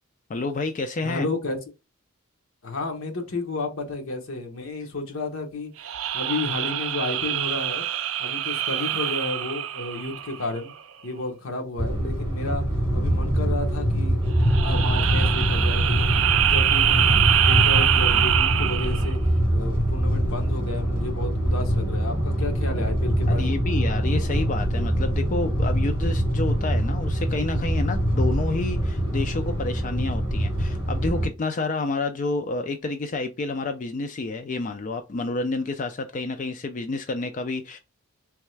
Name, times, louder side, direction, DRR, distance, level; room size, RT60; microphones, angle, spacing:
voice 1, 0.3-1.3 23.3-37.8, left 3 dB, 35° left, 0.4 m, -29 dB
voice 2, 1.0-1.6 2.6-7.9 8.2-10.7 11.0-12.6 12.9-14.2 14.6-19.2 19.5-23.6, left 2 dB, 70° left, 1.0 m, -32 dB
sound 1, 5.8-10.6 14.4-19.1, right 11 dB, 65° right, 0.4 m, -24 dB
sound 2, 11.8-31.3, equal, 25° right, 2.0 m, -24 dB
3.5 x 3.1 x 3.2 m
head